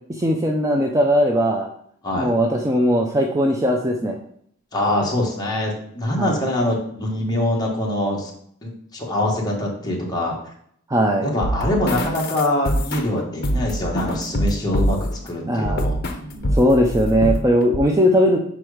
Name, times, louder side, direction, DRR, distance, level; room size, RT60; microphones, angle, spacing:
voice 1, 0.1-1.7 2.1-4.2 6.2-6.4 10.9-11.3 15.5-15.9 16.5-18.4, equal, 15° right, 1 dB, 0.5 m, -19 dB
voice 2, 4.7-8.3 8.6-10.4 11.2-15.0 15.2-16.5, left 1 dB, 20° left, -2 dB, 1.5 m, -24 dB
sound 1, 11.4-15.2 15.6-16.2 16.4-17.4 17.7-17.8, equal, 50° left, 0.8 m, -24 dB
5.3 x 4.6 x 4.9 m, 0.66 s
head